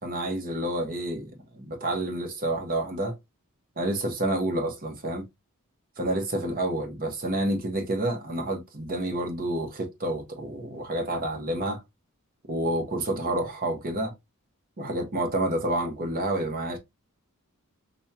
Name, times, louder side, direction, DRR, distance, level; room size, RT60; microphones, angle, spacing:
voice 1, 0.0-3.1 3.8-5.2 6.0-11.8 12.5-14.1 14.8-16.8, right 1 dB, 40° right, 1.0 m, -29 dB
5.2 x 2.2 x 2.8 m
head